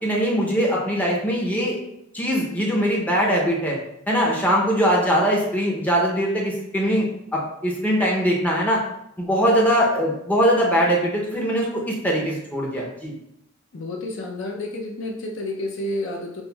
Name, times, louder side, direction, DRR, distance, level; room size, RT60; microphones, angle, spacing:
voice 1, 0.0-1.8 2.1-3.8 4.1-8.8 9.2-13.1, equal, 10° left, -3 dB, 0.5 m, -21 dB
voice 2, 13.7-16.4, left 1 dB, 65° left, 0 dB, 0.5 m, -30 dB
5.7 x 2.1 x 2.2 m, 0.79 s
head